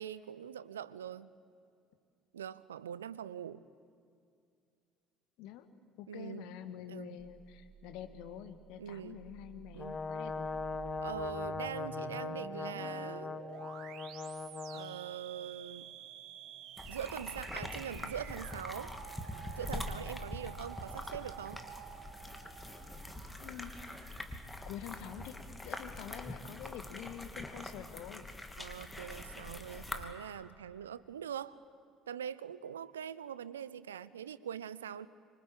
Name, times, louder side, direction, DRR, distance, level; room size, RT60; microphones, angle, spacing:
voice 1, 0.0-1.3 2.3-3.6 6.1-6.4 6.9-7.2 8.8-9.3 9.7-10.0 11.0-13.4 14.7-16.0 16.9-18.9 19.6-21.6 28.6-31.6 32.1-35.1, right 9 dB, 80° right, 17 dB, 0.6 m, -43 dB
voice 2, 6.0-10.5 23.4-23.8 24.7-28.3, left 10 dB, 60° left, 9 dB, 1.7 m, -47 dB
sound 1, 7.2-24.3, right 10 dB, 60° right, 1.4 m, -51 dB
Brass instrument, 9.8-15.0, left 4 dB, 30° left, 1.7 m, -40 dB
sound 2, 16.8-30.0, left 1 dB, 10° left, 2.9 m, -44 dB
26.0 x 24.5 x 8.8 m, 2.4 s
figure-of-eight pair, 55°, 0 cm